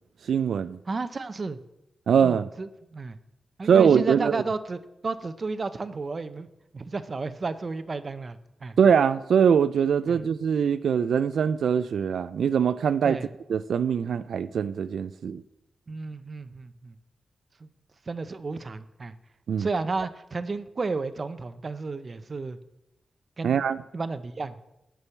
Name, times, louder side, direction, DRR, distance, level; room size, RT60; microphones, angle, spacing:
voice 1, 0.3-0.8 2.1-2.5 3.6-4.4 8.8-13.2 13.5-15.4 19.5-19.7 23.4-23.8, right 7 dB, 90° right, 0.3 m, -22 dB
voice 2, 0.9-1.6 2.2-3.2 3.6-6.5 6.7-8.8 10.1-10.2 13.0-13.3 15.9-17.0 17.6-17.7 18.1-19.1 19.6-22.6 23.4-23.6 23.9-24.7, right 3 dB, 40° right, 0.6 m, -32 dB
9.8 x 6.2 x 7.0 m
wide cardioid pair, 135°, 0 cm